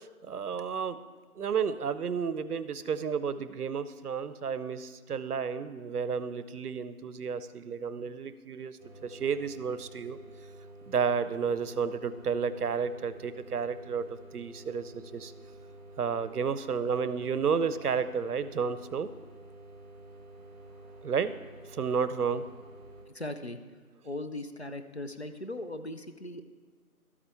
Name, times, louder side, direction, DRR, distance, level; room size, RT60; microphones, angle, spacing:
voice 1, 0.3-1.0 1.4-8.7 9.0-10.2 10.9-15.3 16.0-19.1 21.0-21.3 21.7-22.4, right 6 dB, 85° right, 14 dB, 0.7 m, -31 dB
sound 1, 8.8-23.1, right 1 dB, 40° right, 2.4 m, -50 dB
voice 2, 23.1-23.6 24.0-26.4, left 1 dB, 50° left, 8 dB, 0.5 m, -38 dB
13.0 x 8.7 x 3.4 m, 1.5 s
figure-of-eight pair, 175°, 45 cm